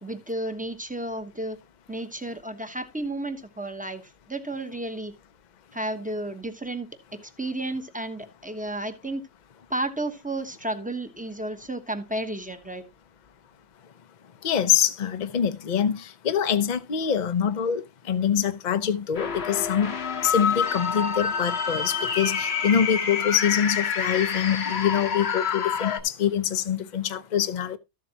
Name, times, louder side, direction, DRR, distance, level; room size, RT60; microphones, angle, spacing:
voice 1, 0.0-1.6 1.9-4.0 4.3-5.1 5.7-9.3 9.7-12.8, right 1 dB, 5° right, 1.0 m, -32 dB
voice 2, 14.4-20.0 20.2-27.8, left 8 dB, 45° left, 0.8 m, -25 dB
sound 1, 19.1-26.0, left 6 dB, 60° left, 1.3 m, -27 dB
13.5 x 7.6 x 2.9 m
omnidirectional pair, 1.2 m